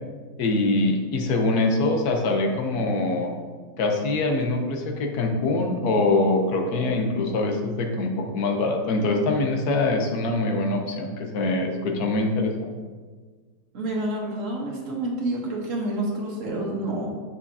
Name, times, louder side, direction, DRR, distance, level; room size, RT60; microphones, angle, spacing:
voice 1, 0.4-3.3 3.8-12.8, left 2 dB, 85° left, 3 dB, 1.4 m, -24 dB
voice 2, 13.7-17.1, right 1 dB, 60° right, -2 dB, 1.5 m, -28 dB
7.3 x 5.6 x 2.7 m, 1.5 s
omnidirectional pair, 1.6 m